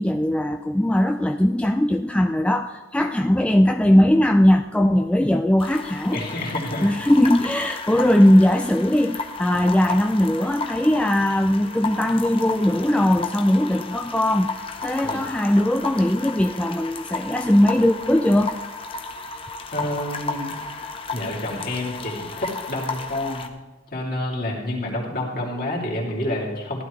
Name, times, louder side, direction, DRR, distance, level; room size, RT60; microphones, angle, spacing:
voice 1, 0.0-6.2 6.8-14.5 14.8-18.6, left 1 dB, 5° left, 5 dB, 0.3 m, -19 dB
sound 1, 5.6-23.5, left 4 dB, 30° left, 0.8 m, -33 dB
voice 2, 6.1-6.9 15.0-15.2 19.7-20.5 21.1-23.5 23.9-26.8, left 1 dB, 50° left, -3 dB, 2.9 m, -28 dB
15.5 x 11.0 x 3.2 m, 1.2 s
head